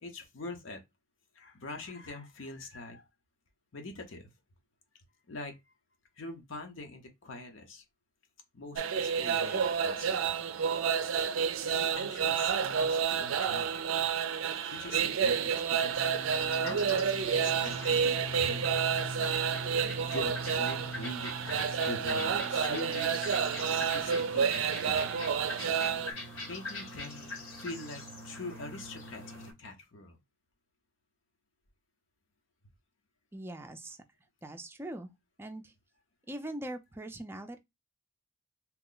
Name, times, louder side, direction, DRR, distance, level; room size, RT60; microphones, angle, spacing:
voice 1, 0.0-0.8 1.3-3.1 3.7-4.3 5.3-5.6 6.2-7.8 8.5-10.3 11.6-13.8 14.7-16.0 16.6-18.7 20.0-23.3 23.7-26.2 26.5-30.2, left 2 dB, 75° left, 0.7 m, -44 dB
sound 1, 8.8-26.1, right 7 dB, 90° right, 0.4 m, -30 dB
sound 2, 15.9-29.5, left 1 dB, 90° left, 1.2 m, -41 dB
voice 2, 33.3-34.0 34.4-35.1 35.4-35.7 36.3-37.6, right 1 dB, 10° right, 0.4 m, -41 dB
2.9 x 2.0 x 3.8 m
head